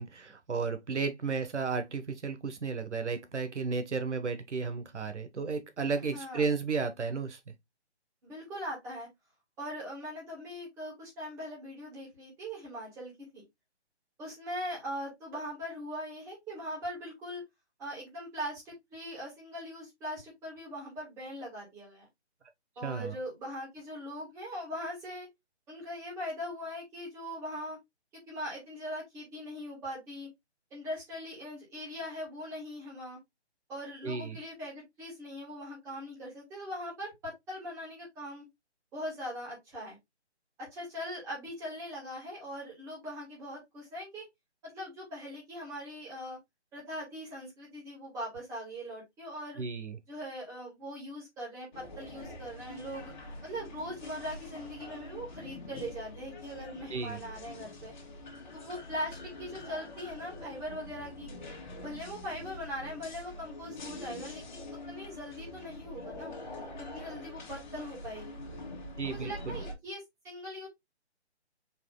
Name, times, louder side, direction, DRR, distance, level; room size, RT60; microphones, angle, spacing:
voice 1, 0.0-7.5 22.8-23.1 34.0-34.4 49.6-50.0 56.9-57.2 69.0-69.6, right 4 dB, 90° right, 1.2 m, -33 dB
voice 2, 6.1-6.5 8.2-9.1 9.6-13.4 14.2-17.4 17.8-22.1 22.8-25.3 25.7-27.8 28.3-30.3 30.7-33.2 33.7-38.5 38.9-40.0 40.6-44.2 44.7-46.4 46.7-49.6 50.1-53.1 53.4-57.9 58.5-61.3 61.8-66.4 66.8-68.4 69.0-70.7, equal, 10° right, 1.9 m, -41 dB
sound 1, 51.7-69.7, left 1 dB, 40° left, 1.7 m, -45 dB
4.8 x 3.0 x 3.8 m
hypercardioid pair, 165°, 34 cm